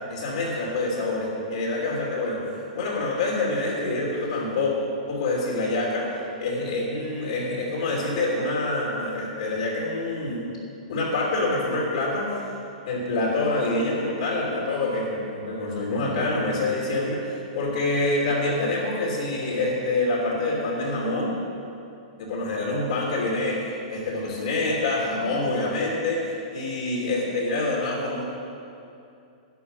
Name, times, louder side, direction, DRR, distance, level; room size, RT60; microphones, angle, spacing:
voice 1, 0.1-4.7 5.1-6.1 6.4-10.4 10.9-12.4 12.9-21.4 22.2-28.2, left 2 dB, 60° left, -3 dB, 3.1 m, -26 dB
11.5 x 9.7 x 5.8 m, 2.6 s
hypercardioid pair, 150°, 4 cm